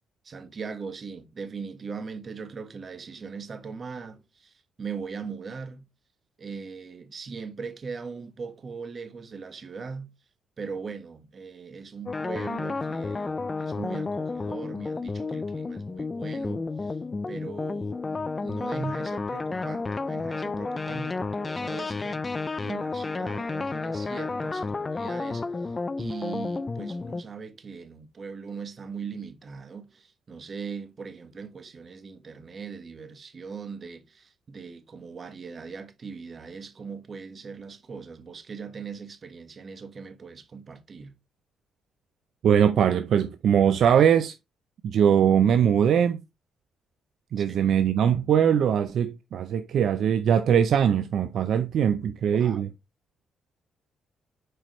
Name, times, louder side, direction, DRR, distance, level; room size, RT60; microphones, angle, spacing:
voice 1, 0.2-5.8 6.4-10.1 10.6-17.0 17.3-25.7 26.0-41.1 47.4-47.5 52.3-52.6, right 5 dB, 40° right, 1.3 m, -40 dB
sound 1, 12.1-27.2, left 3 dB, 25° left, 0.5 m, -31 dB
voice 2, 42.4-44.3 44.8-46.2 47.3-52.7, right 8 dB, 65° right, 0.5 m, -21 dB
7.8 x 4.8 x 3.1 m
cardioid pair, 90°, 0 cm